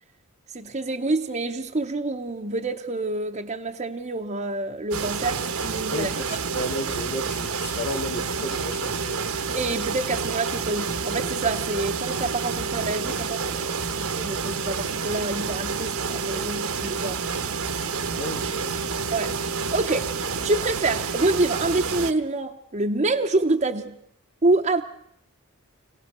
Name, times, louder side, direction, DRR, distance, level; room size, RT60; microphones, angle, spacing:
voice 1, 0.5-6.4 9.5-17.2 19.1-19.4 19.7-20.1 20.4-24.0 24.4-24.8, right 2 dB, 30° right, 0.8 m, -27 dB
sound 1, 4.9-22.1, right 5 dB, 80° right, 1.2 m, -29 dB
voice 2, 5.9-9.3 18.2-18.9, left 1 dB, 50° left, 1.9 m, -33 dB
26.0 x 17.5 x 6.7 m
head